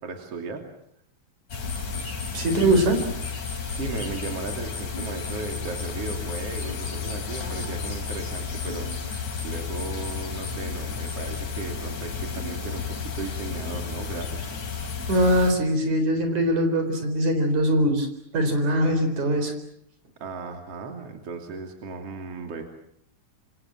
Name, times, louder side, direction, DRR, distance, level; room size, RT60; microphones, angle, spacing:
voice 1, 0.0-0.6 2.4-2.8 3.7-14.6 20.2-22.6, right 4 dB, 55° right, 4 dB, 3.8 m, -36 dB
sound 1, 1.5-15.5, left 5 dB, 70° left, 4.8 m, -32 dB
voice 2, 2.3-3.0 15.1-18.1 18.3-19.5, right 1 dB, 80° right, 7 dB, 5.6 m, -22 dB
28.0 x 25.5 x 7.4 m, 0.70 s
omnidirectional pair, 3.3 m